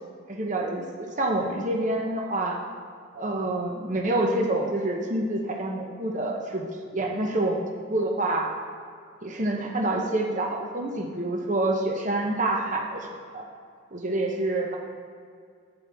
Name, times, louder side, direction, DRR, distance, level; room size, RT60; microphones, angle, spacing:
voice 1, 0.3-2.6 3.1-8.5 9.2-13.1 13.3-13.5 13.9-14.8, right 2 dB, 40° right, 0 dB, 0.8 m, -27 dB
11.0 x 8.9 x 3.5 m, 2.2 s
head